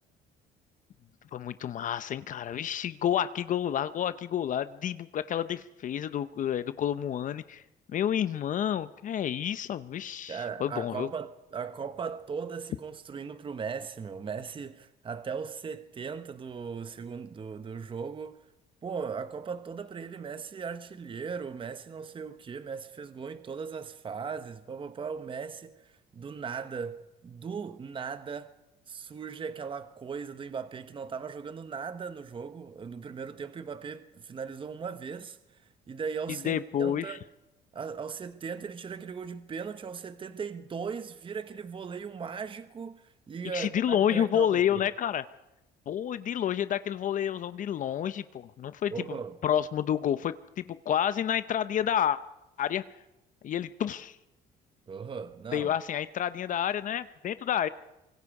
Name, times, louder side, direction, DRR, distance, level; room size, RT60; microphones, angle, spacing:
voice 1, 1.3-7.6 7.9-11.1 36.4-37.2 43.5-45.2 45.9-49.2 49.4-52.2 52.6-52.8 53.4-54.2 55.5-57.7, left 9 dB, 50° left, 0.7 m, -29 dB
voice 2, 10.3-18.4 18.8-28.5 28.9-35.6 35.9-37.2 37.7-44.9 48.9-49.4 54.9-55.7, right 6 dB, 30° right, 1.0 m, -38 dB
25.0 x 22.5 x 4.8 m
cardioid pair, 110°, 17 cm